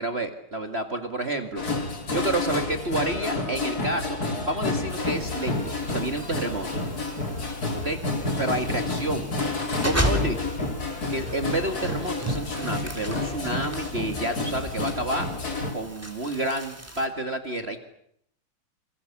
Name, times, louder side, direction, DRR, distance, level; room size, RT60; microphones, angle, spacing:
voice 1, 0.0-6.7 7.7-9.3 9.8-10.5 11.1-15.3 15.7-17.8, right 1 dB, 30° right, 6 dB, 2.1 m, -30 dB
sound 1, 1.6-15.7, left 2 dB, 45° left, 4.0 m, -30 dB
sound 2, 3.8-6.2, left 3 dB, 65° left, 4.1 m, -45 dB
sound 3, 4.9-17.1, equal, 5° right, 3.5 m, -36 dB
29.0 x 26.0 x 7.3 m, 0.72 s
omnidirectional pair, 2.3 m